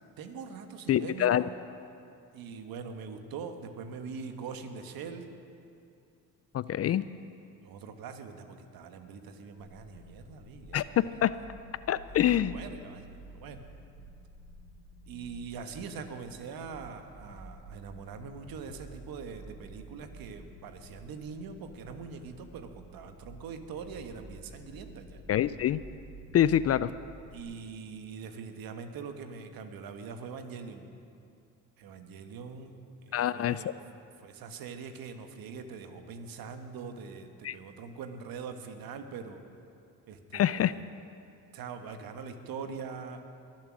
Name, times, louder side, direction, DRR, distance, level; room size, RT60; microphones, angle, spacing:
voice 1, 0.2-1.5 2.3-5.3 7.6-11.2 12.1-13.6 15.1-25.2 27.3-30.9 31.8-33.8 34.2-39.4 40.1-40.9 41.5-43.2, right 5 dB, 70° right, 7 dB, 1.3 m, -43 dB
voice 2, 0.9-1.5 6.5-7.1 10.7-10.8 11.2-11.3 11.9-12.5 25.3-25.8 26.3-26.9 33.1-33.7 37.4-37.6 40.3-40.7, left 11 dB, 40° left, 16 dB, 0.4 m, -25 dB
sound 1, 9.8-27.4, right 1 dB, 85° left, 2.1 m, -50 dB
22.0 x 7.5 x 6.3 m, 2.5 s
supercardioid pair, 80°, 37 cm